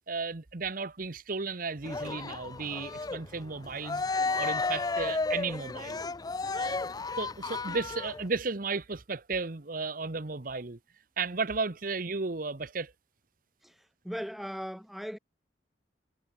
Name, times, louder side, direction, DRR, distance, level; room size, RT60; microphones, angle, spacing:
voice 1, 0.0-4.0 4.3-6.0 6.5-6.9 7.2-10.8 11.2-12.9, right 4 dB, 50° right, 1.0 m, -34 dB
Cheering, 1.8-8.3, left 3 dB, 20° left, 0.4 m, -33 dB
voice 2, 13.6-15.2, equal, ahead, 2.1 m, -39 dB
head